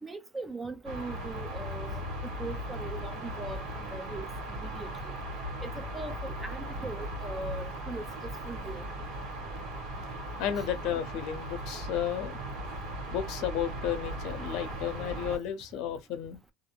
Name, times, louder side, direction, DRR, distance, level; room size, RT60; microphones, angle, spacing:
voice 1, 0.0-5.1 5.6-8.9, right 3 dB, 10° right, 0.5 m, -40 dB
sound 1, 0.8-15.4, equal, 60° right, 1.3 m, -38 dB
voice 2, 10.4-12.4 13.1-16.4, left 9 dB, 55° left, 0.7 m, -33 dB
2.4 x 2.0 x 3.1 m
cardioid pair, 155°, 0 cm